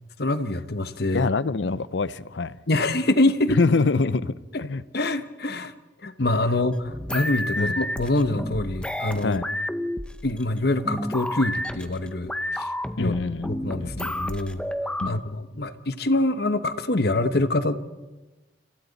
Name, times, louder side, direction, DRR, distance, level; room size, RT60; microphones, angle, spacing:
voice 1, 0.2-1.3 2.7-3.6 4.9-5.7 6.0-9.4 10.2-12.7 13.0-13.1 13.5-14.7 15.1-17.9, left 2 dB, 60° left, 1.1 m, -25 dB
voice 2, 1.1-2.5 3.5-4.8 7.6-7.8 9.2-9.5 13.0-14.1 15.0-15.2, left 3 dB, 85° left, 0.7 m, -25 dB
sound 1, 6.7-15.1, left 1 dB, 5° left, 0.8 m, -31 dB
29.5 x 27.0 x 4.1 m
head